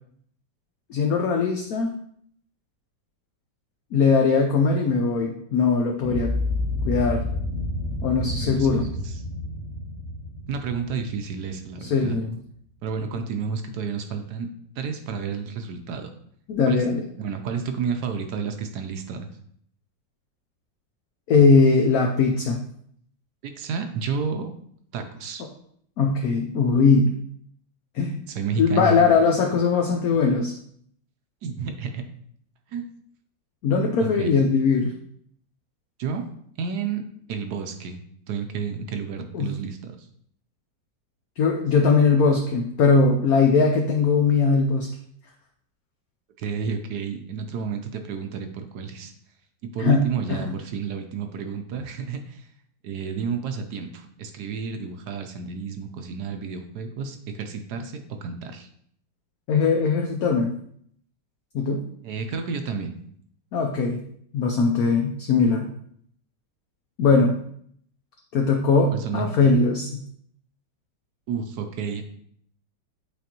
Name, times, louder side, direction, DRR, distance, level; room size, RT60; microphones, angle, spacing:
voice 1, 0.9-1.9 3.9-6.3 6.8-7.2 8.0-8.9 11.9-12.4 16.5-17.0 21.3-22.6 26.0-27.1 27.9-28.2 28.6-30.5 33.6-34.9 39.3-39.5 41.4-44.9 49.8-50.5 59.5-60.5 61.5-61.8 63.5-64.0 64.3-65.7 67.0-67.4 68.3-70.0, left 4 dB, 65° left, 2 dB, 1.0 m, -20 dB
sound 1, 6.0-12.1, left 1 dB, ahead, 0.5 m, -30 dB
voice 2, 8.4-9.2 10.5-12.2 12.8-16.1 16.7-16.8 17.2-19.3 23.4-24.5 24.9-25.4 28.3-29.0 31.4-32.0 32.7-32.9 34.0-34.3 36.0-36.3 36.6-37.0 37.3-38.0 38.3-40.1 46.4-49.1 49.7-52.5 52.8-58.7 62.0-62.9 68.9-69.4 71.3-72.0, right 6 dB, 70° right, 6 dB, 1.1 m, -31 dB
8.4 x 4.0 x 2.9 m, 0.65 s
omnidirectional pair, 2.0 m